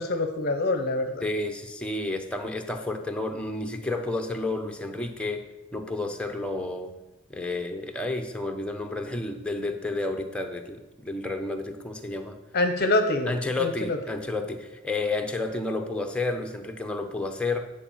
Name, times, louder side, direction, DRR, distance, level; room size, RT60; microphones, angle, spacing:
voice 1, 0.0-1.2 12.5-13.3 13.6-14.0, left 2 dB, 45° left, 6 dB, 0.7 m, -25 dB
voice 2, 1.2-5.4 5.7-6.9 7.3-12.4 13.3-17.6, left 2 dB, 5° left, 5 dB, 0.7 m, -31 dB
9.9 x 4.6 x 7.2 m, 1.1 s
head